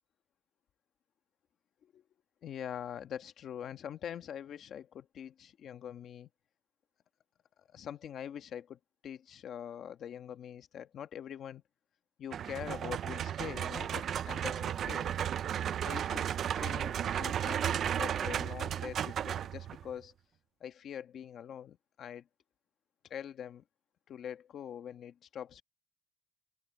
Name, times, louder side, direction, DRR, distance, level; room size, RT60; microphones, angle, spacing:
voice 1, 2.4-6.3 7.7-11.6 12.2-15.1 15.8-16.2 16.5-20.1 20.6-22.2 23.1-23.6 24.1-25.6, left 9 dB, 45° left, 1.3 m, -44 dB
sound 1, 12.3-19.9, right 9 dB, 45° right, 0.4 m, -34 dB
cardioid pair, 170°, 0 cm